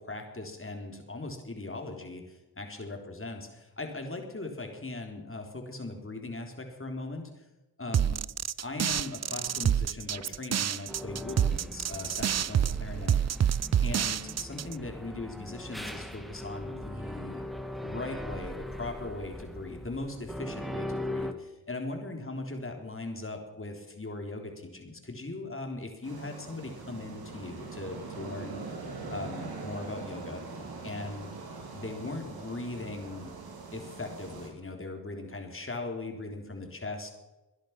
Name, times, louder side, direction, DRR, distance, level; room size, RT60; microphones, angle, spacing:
voice 1, 0.0-7.4 7.8-8.2 8.6-13.2 13.8-17.4 17.8-28.6 29.1-30.4 30.8-31.4 31.7-33.3 33.7-37.1, left 2 dB, 35° left, 3 dB, 3.7 m, -39 dB
sound 1, 7.9-14.7, right 9 dB, 45° right, 0.5 m, -28 dB
sound 2, 10.9-21.3, left 1 dB, ahead, 2.0 m, -40 dB
sound 3, 26.0-34.5, right 3 dB, 85° right, 3.5 m, -42 dB
20.5 x 10.5 x 6.0 m, 1.0 s
cardioid pair, 55°, 36 cm